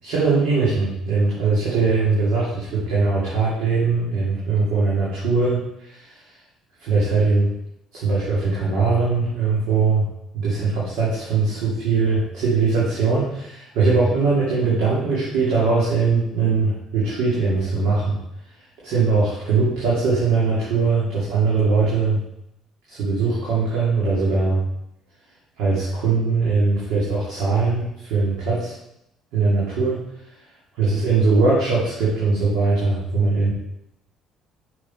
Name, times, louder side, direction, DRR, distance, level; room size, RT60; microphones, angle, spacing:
voice 1, 0.0-6.3 6.8-7.5 7.9-10.1 10.3-18.2 18.8-22.2 22.9-24.6 25.6-28.7 29.3-30.0 30.7-33.5, right 4 dB, 80° right, -7 dB, 2.3 m, -21 dB
6.2 x 5.6 x 4.3 m, 0.81 s
supercardioid pair, 75°, 0 cm